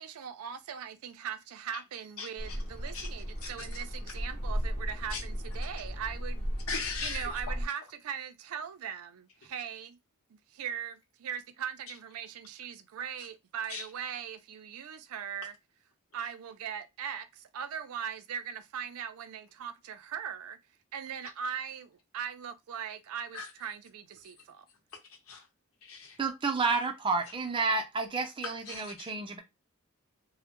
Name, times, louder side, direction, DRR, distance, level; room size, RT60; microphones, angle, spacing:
voice 1, 0.0-6.5 7.0-10.0 10.3-15.5 16.1-20.6 20.9-24.7, right 8 dB, 85° right, 0.4 m, -40 dB
voice 2, 2.2-2.6 2.9-3.1 3.4-3.8 5.1-5.2 6.7-7.6 13.2-13.3 13.7-13.9 16.1-16.3 21.2-21.3 23.3-23.5 24.2-24.3 25.0-25.5 25.8-26.2 28.4-29.1, left 5 dB, 75° left, 0.8 m, -40 dB
sound 1, 2.4-7.7, equal, 35° left, 0.6 m, -36 dB
voice 3, 26.2-29.4, right 4 dB, 25° right, 0.5 m, -30 dB
2.1 x 2.0 x 2.9 m
head